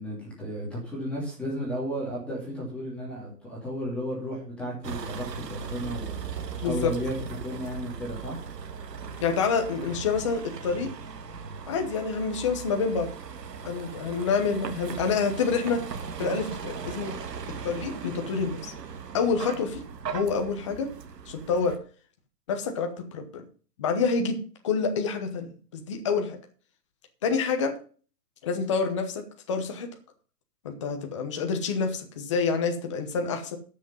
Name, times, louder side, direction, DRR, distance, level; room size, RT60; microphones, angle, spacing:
voice 1, 0.0-8.4, equal, ahead, -5 dB, 2.7 m, -34 dB
Vehicle, 4.8-21.8, right 6 dB, 80° right, 1.9 m, -38 dB
voice 2, 6.6-6.9 9.2-10.9 11.7-13.1 13.6-15.8 16.2-17.2 17.6-18.7 19.1-20.9 21.3-21.8 22.5-23.4 23.8-24.4 24.6-26.4 27.2-27.7 28.4-29.9 30.6-33.6, left 5 dB, 20° left, 4 dB, 1.0 m, -27 dB
13.0 x 6.5 x 5.5 m, 0.39 s
hypercardioid pair, 175°, 48 cm